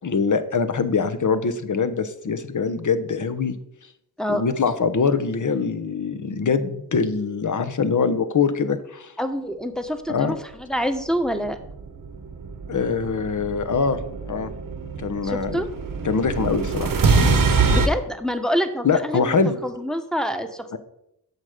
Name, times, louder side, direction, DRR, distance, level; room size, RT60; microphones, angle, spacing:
voice 1, 0.0-3.5 4.3-9.1 10.1-10.4 12.7-14.5 15.0-15.6 16.0-16.9 18.8-19.6 20.7-20.8, left 5 dB, 45° left, 10 dB, 1.0 m, -23 dB
voice 2, 9.2-11.6 15.2-15.7 17.7-19.4 19.6-20.8, equal, ahead, 7 dB, 1.2 m, -26 dB
sound 1, 11.5-17.9, right 4 dB, 50° right, 1.2 m, -24 dB
8.2 x 6.4 x 5.1 m, 0.79 s
cardioid pair, 50°, 42 cm